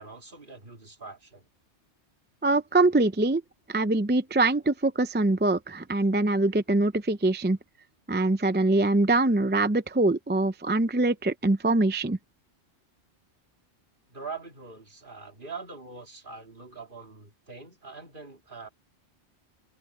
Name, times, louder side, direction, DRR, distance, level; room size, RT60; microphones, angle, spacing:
voice 1, 0.0-1.5 14.1-18.7, right 4 dB, 45° right, 2.9 m, -43 dB
voice 2, 2.4-3.4 3.7-7.6 8.1-12.2, right 2 dB, 15° right, 0.4 m, -23 dB
omnidirectional pair, 1.2 m